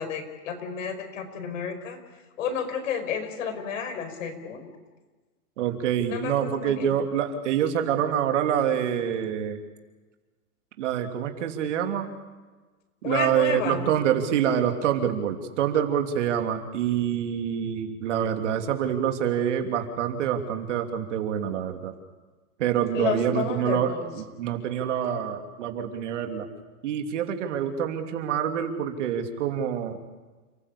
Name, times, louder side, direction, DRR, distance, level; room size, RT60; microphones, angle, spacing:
voice 1, 0.0-2.0 2.4-4.7 6.1-6.9 13.0-13.9 22.9-24.1, left 7 dB, 55° left, 7 dB, 5.2 m, -31 dB
voice 2, 5.6-9.6 10.8-12.2 13.0-21.9 22.6-26.5 26.8-30.0, right 9 dB, 55° right, 6 dB, 3.1 m, -26 dB
29.5 x 15.5 x 8.5 m, 1.3 s
hypercardioid pair, 160°, 44 cm